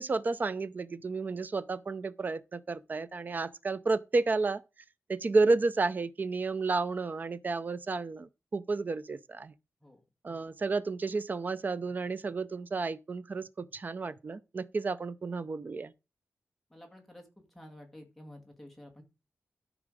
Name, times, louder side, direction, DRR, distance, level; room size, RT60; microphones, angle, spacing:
voice 1, 0.0-4.6 5.1-9.5 10.2-15.9, right 3 dB, 35° right, 0.5 m, -31 dB
voice 2, 16.7-19.0, left 1 dB, 5° left, 2.1 m, -51 dB
13.0 x 5.0 x 4.9 m
wide cardioid pair, 180°, 5 cm